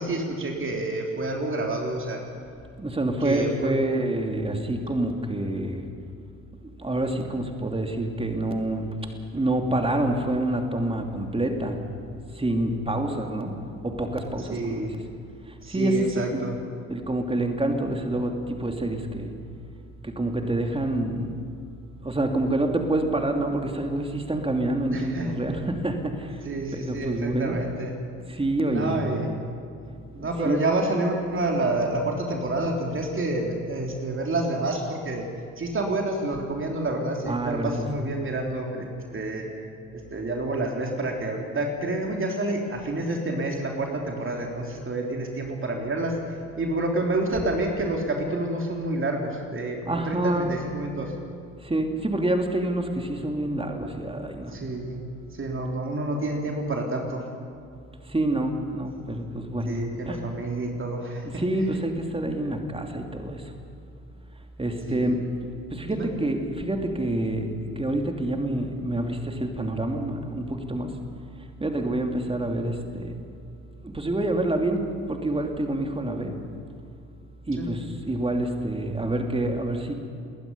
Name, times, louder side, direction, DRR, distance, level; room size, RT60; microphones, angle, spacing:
voice 1, 0.0-2.2 3.2-3.9 14.4-14.9 15.6-16.5 24.9-25.4 26.4-27.9 28.7-29.3 30.1-35.3 35.6-38.9 39.1-39.5 39.9-46.2 46.6-51.1 54.5-55.0 55.3-57.2 59.6-61.4 64.9-65.2 65.9-66.1 77.6-77.7, right 2 dB, 30° right, 1 dB, 3.3 m, -28 dB
voice 2, 2.8-5.9 6.6-8.9 9.3-11.8 12.3-13.5 13.8-15.0 15.5-16.0 16.3-16.5 16.9-19.3 20.0-21.3 22.0-26.4 26.7-27.6 28.3-29.0 30.2-30.6 37.3-37.8 49.9-50.5 51.6-54.5 58.0-59.8 60.0-60.2 61.3-63.5 64.6-65.2 65.7-70.9 71.6-73.2 73.8-76.3 77.5-79.9, right 1 dB, 15° right, 3 dB, 3.0 m, -27 dB
29.0 x 20.5 x 5.5 m, 2.5 s
figure-of-eight pair, 50°, 43 cm